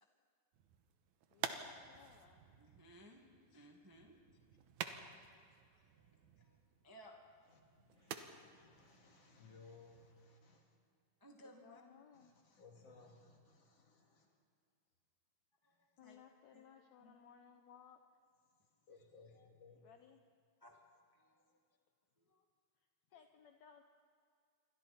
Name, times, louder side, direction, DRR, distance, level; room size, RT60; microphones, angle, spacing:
sound 1, 0.5-10.2, right 8 dB, 70° right, 2.3 m, -51 dB
voice 1, 1.3-2.4 11.4-12.3 16.0-18.0 19.8-20.3 23.1-23.8, left 8 dB, 70° left, 5 dB, 2.0 m, -62 dB
voice 2, 2.5-4.4 5.8-6.6 6.8-7.4 11.2-11.8 15.6-16.2 16.5-16.6 17.0-17.2 19.3-19.5 20.6-20.8 21.1-21.6 22.2-22.4 23.1-23.2, equal, 10° right, 1 dB, 1.1 m, -62 dB
voice 3, 7.5-10.8 12.2-14.3 18.9-19.8, left 4 dB, 50° left, 0 dB, 3.5 m, -62 dB
28.0 x 24.0 x 4.3 m, 2.2 s
omnidirectional pair, 3.6 m